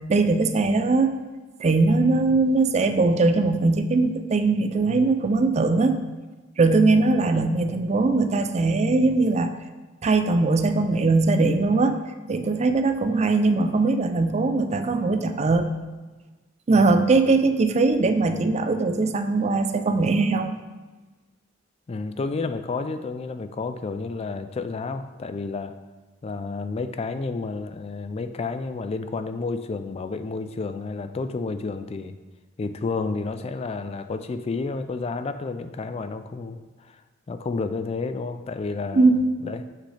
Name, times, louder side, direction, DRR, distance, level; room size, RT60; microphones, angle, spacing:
voice 1, 0.1-1.1 1.6-6.0 6.6-9.5 10.0-12.0 12.3-15.7 16.7-20.6 38.9-39.3, right 3 dB, 35° right, 8 dB, 0.4 m, -20 dB
voice 2, 21.9-25.7 26.2-32.2 32.6-37.0 37.3-39.1 39.4-39.6, left 4 dB, 30° left, 10 dB, 0.3 m, -30 dB
7.7 x 6.0 x 3.3 m, 1.2 s
head